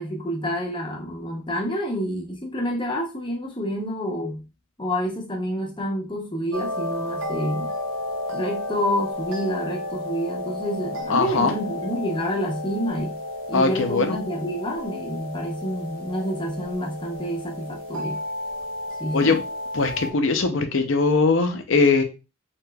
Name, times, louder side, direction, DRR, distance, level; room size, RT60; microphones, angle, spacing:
voice 1, 0.0-4.4 4.8-7.7 8.3-13.2 13.5-18.2 19.0-19.4, equal, 20° left, 0.7 m, -28 dB
sound 1, 6.5-20.1, left 1 dB, 65° right, 0.6 m, -32 dB
voice 2, 11.1-11.5 13.5-14.2 19.1-19.4 19.7-22.0, left 4 dB, 65° left, 0.5 m, -20 dB
3.3 x 2.9 x 2.2 m
head